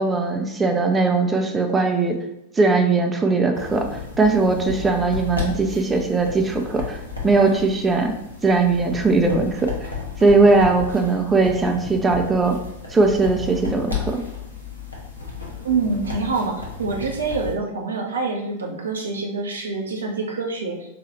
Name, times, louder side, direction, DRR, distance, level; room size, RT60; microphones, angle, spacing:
voice 1, 0.0-2.2 2.6-8.1 8.4-9.7 10.2-12.6 12.9-14.2, right 3 dB, 15° right, 4 dB, 0.5 m, -19 dB
sound 1, 3.5-17.5, left 5 dB, 80° left, 0.8 m, -33 dB
voice 2, 15.6-20.8, right 4 dB, 70° right, 0 dB, 0.7 m, -26 dB
4.1 x 2.3 x 3.0 m, 0.81 s
figure-of-eight pair, 90°, 0 cm